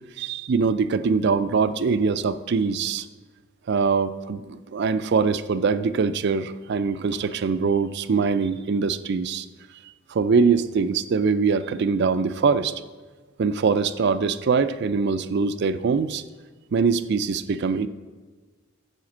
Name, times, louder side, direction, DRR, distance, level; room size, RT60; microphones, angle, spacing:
voice 1, 0.2-3.1 3.7-9.5 10.1-12.7 13.4-16.2 16.7-17.9, right 5 dB, 55° right, 12 dB, 0.4 m, -23 dB
11.0 x 5.0 x 7.2 m, 1.4 s
head